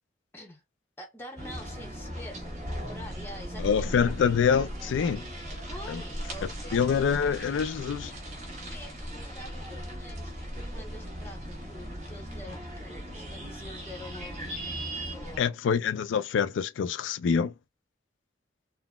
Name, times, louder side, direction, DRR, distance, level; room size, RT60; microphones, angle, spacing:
voice 1, 1.0-3.9 5.7-7.0 8.5-14.5 15.1-15.6, left 1 dB, 15° left, 0.7 m, -46 dB
sound 1, 1.4-15.4, equal, 40° right, 1.1 m, -38 dB
voice 2, 3.6-5.3 5.9-6.0 6.7-8.1 15.4-17.5, left 6 dB, 85° left, 0.3 m, -26 dB
3.8 x 2.0 x 2.2 m
head